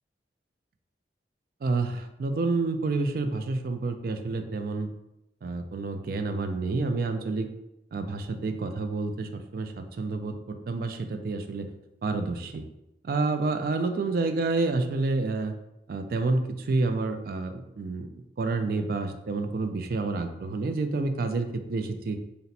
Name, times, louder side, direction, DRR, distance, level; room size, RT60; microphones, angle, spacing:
voice 1, 1.6-4.9 5.4-7.5 7.9-11.7 12.0-12.7 13.0-15.5 15.9-18.1 18.4-22.2, right 3 dB, 50° right, 7 dB, 0.3 m, -29 dB
4.1 x 2.1 x 4.0 m, 0.92 s
head